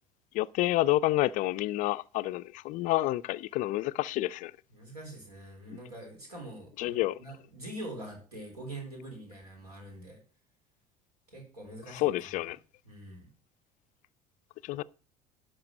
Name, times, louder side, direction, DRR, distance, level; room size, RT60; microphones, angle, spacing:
voice 1, 0.3-4.5 6.8-7.2 11.9-12.6 14.6-14.8, left 16 dB, 40° left, 0.4 m, -29 dB
voice 2, 4.7-10.2 11.3-12.5 12.8-13.3, right 1 dB, 80° right, 4.0 m, -44 dB
11.5 x 4.9 x 6.2 m
figure-of-eight pair, 65°, 20 cm